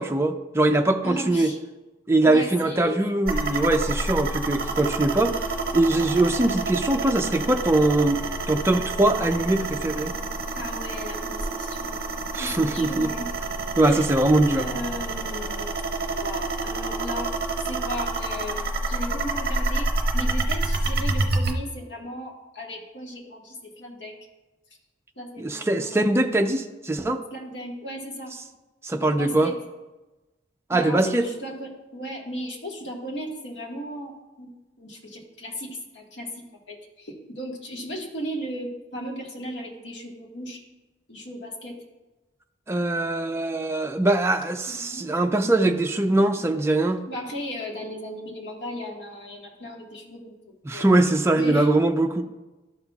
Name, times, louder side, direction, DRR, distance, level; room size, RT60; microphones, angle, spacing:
voice 1, 0.0-1.5 2.1-5.5 5.7-10.1 12.3-13.1 13.8-14.7 25.4-27.2 28.8-29.5 30.7-31.3 42.7-47.0 50.7-52.2, right 2 dB, 15° right, 5 dB, 0.4 m, -22 dB
voice 2, 1.0-1.6 2.2-3.0 6.0-6.3 10.5-12.0 12.4-13.3 13.8-14.1 14.6-17.3 17.6-19.9 20.1-24.2 25.2-26.0 27.3-28.3 28.9-29.5 30.7-34.5 34.8-36.3 36.7-40.6 41.1-41.7 44.7-45.1 47.0-50.3 50.7-50.9 51.3-51.7, equal, 70° left, -1 dB, 1.5 m, -36 dB
sound 1, 3.3-21.5, right 2 dB, 50° right, 0.7 m, -28 dB
12.0 x 5.6 x 2.3 m, 1.1 s
head